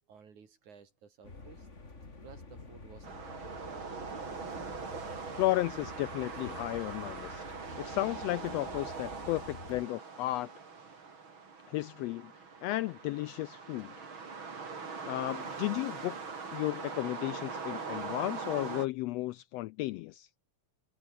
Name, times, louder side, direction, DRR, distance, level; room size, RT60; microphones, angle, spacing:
voice 1, 0.1-1.7 2.2-3.6, right 6 dB, 85° right, 5.0 m, -55 dB
sound 1, 1.2-9.8, left 3 dB, 25° left, 3.3 m, -49 dB
sound 2, 3.0-18.9, right 5 dB, 45° right, 3.9 m, -42 dB
voice 2, 5.4-7.4 7.8-10.5 11.7-12.3 12.6-13.9 15.1-20.3, left 17 dB, 80° left, 1.5 m, -34 dB
omnidirectional pair, 3.3 m